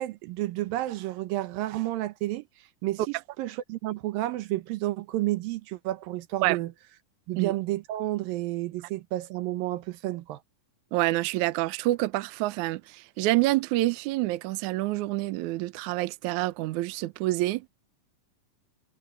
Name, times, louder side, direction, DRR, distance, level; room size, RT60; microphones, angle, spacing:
voice 1, 0.0-2.5 2.8-6.7 7.3-10.4, right 16 dB, 90° right, 2.7 m, -31 dB
voice 2, 10.9-17.7, right 18 dB, 75° right, 2.0 m, -27 dB
omnidirectional pair, 4.0 m